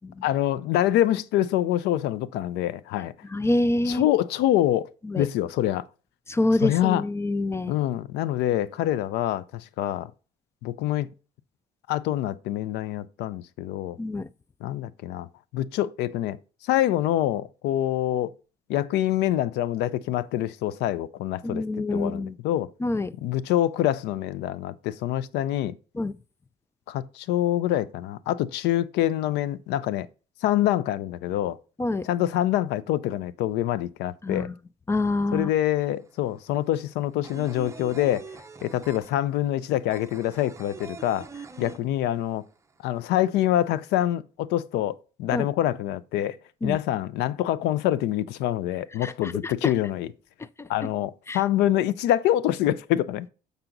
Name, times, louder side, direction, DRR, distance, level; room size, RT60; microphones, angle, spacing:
voice 1, 0.2-3.1 3.9-4.9 5.1-5.8 6.6-7.0 7.7-10.1 10.6-11.1 11.9-14.0 14.6-15.3 15.5-16.4 16.6-18.3 18.7-21.6 21.9-22.7 23.2-25.8 26.9-30.1 30.4-31.6 32.0-34.5 35.3-38.2 38.6-42.4 42.8-46.4 46.6-50.1 50.7-53.3, left 13 dB, 85° left, 0.5 m, -25 dB
voice 2, 3.3-4.1 5.0-5.3 6.3-7.7 14.0-14.3 21.4-22.4 22.8-23.1 25.9-26.1 31.8-32.1 34.2-34.5 34.9-35.5 45.3-45.5 46.6-46.8 49.0-49.7 50.4-50.7 51.3-51.4, left 2 dB, 15° left, 0.3 m, -26 dB
sound 1, 35.5-35.6 35.8-42.4 42.7-42.8 43.1-43.9, right 5 dB, 15° right, 0.8 m, -43 dB
6.8 x 5.9 x 3.9 m
cardioid pair, 110°, 17 cm